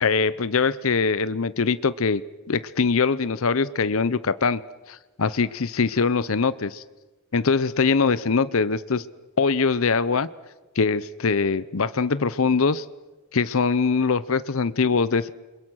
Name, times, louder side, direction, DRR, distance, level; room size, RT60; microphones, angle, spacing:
voice 1, 0.0-2.2 2.5-4.6 4.9-6.8 7.3-9.0 9.4-10.3 10.8-12.8 13.3-15.3, left 4 dB, 70° left, 16 dB, 0.7 m, -22 dB
30.0 x 22.5 x 6.3 m, 1.2 s
head